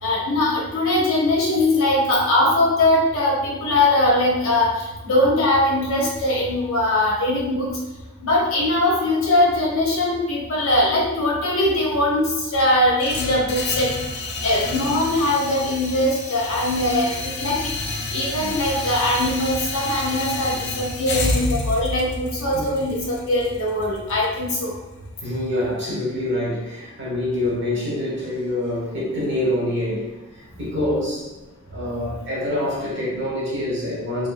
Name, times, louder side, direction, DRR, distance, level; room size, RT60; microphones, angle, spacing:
voice 1, 0.0-7.7 8.2-13.9 14.4-17.7 18.1-24.7, left 1 dB, 75° left, -3 dB, 0.9 m, -21 dB
sound 1, 13.0-25.0, left 2 dB, 55° left, 0.5 m, -29 dB
voice 2, 25.2-31.3 31.7-34.3, left 1 dB, 60° right, -6 dB, 1.2 m, -26 dB
3.1 x 2.8 x 2.4 m, 1.1 s
head